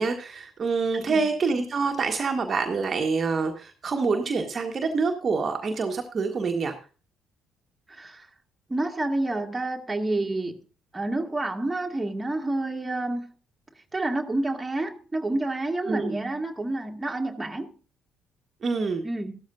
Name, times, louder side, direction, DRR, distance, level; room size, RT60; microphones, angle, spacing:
voice 1, 0.0-6.7 15.9-16.1 18.6-19.0, right 4 dB, 40° right, 1.4 m, -26 dB
voice 2, 0.9-1.3 7.9-8.3 8.7-10.6 10.9-13.3 13.9-17.7 19.0-19.4, right 2 dB, 15° right, 2.0 m, -29 dB
15.0 x 12.5 x 2.6 m
figure-of-eight pair, 45°, 0 cm